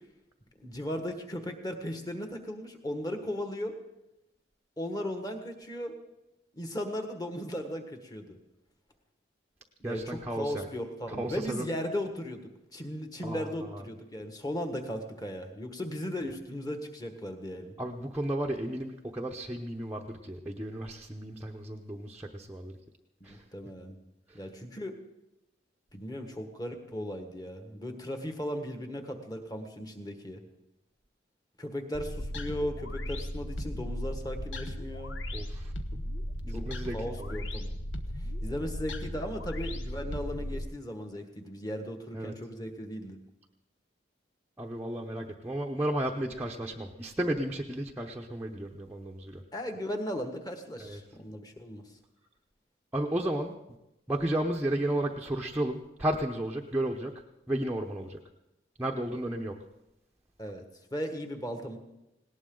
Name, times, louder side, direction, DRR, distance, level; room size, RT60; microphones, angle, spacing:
voice 1, 0.6-3.7 4.8-6.0 6.5-8.4 9.8-12.4 12.7-17.7 23.2-24.0 24.3-24.9 25.9-30.4 31.6-35.2 36.5-36.7 36.9-37.7 38.2-43.2 49.5-51.8 60.4-60.6 60.9-61.8, equal, 20° left, 5 dB, 1.5 m, -37 dB
voice 2, 9.8-10.7 11.1-11.7 13.2-13.8 17.8-22.8 23.2-23.4 24.3-24.4 35.3-35.7 36.4-37.4 42.1-42.3 44.6-49.4 50.8-51.0 52.9-53.5 54.1-57.1 57.5-58.2 58.8-59.6, right 1 dB, 10° right, -1 dB, 0.8 m, -33 dB
sound 1, 31.9-40.7, equal, 80° left, 1.2 m, -36 dB
19.0 x 18.0 x 3.9 m, 0.92 s
head